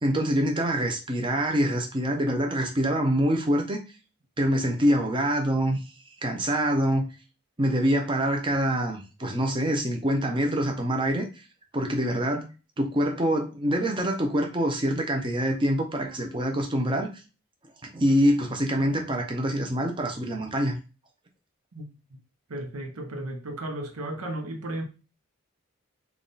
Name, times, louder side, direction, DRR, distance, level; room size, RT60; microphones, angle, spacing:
voice 1, 0.0-3.8 4.4-5.8 6.2-7.1 7.6-11.3 11.7-12.5 12.8-17.1 17.9-20.8, equal, 25° right, 0.6 m, -25 dB
voice 2, 22.5-24.8, right 1 dB, 90° right, 0.8 m, -34 dB
3.4 x 2.4 x 4.0 m
head